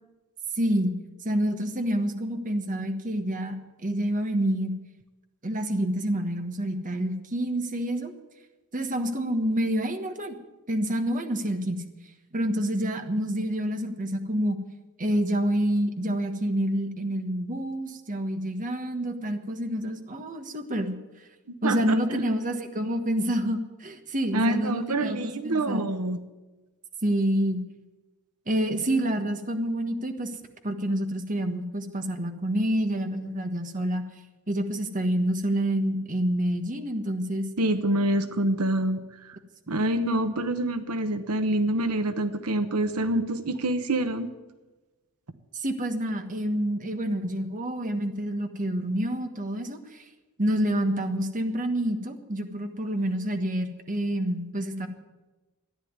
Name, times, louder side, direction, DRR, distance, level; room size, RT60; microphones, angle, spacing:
voice 1, 0.6-1.0 1.2-3.6 3.8-4.7 5.4-8.1 8.7-10.4 10.7-11.8 12.3-14.6 15.0-20.9 21.6-25.9 27.0-27.6 28.5-30.3 30.6-34.0 34.5-37.5 45.5-50.0 50.4-54.9, right 1 dB, 35° right, 6 dB, 1.4 m, -28 dB
voice 2, 21.6-22.2 24.3-26.2 37.6-39.4 39.7-44.3, right 1 dB, 85° right, 10 dB, 1.0 m, -26 dB
14.0 x 10.5 x 9.6 m, 1.2 s
head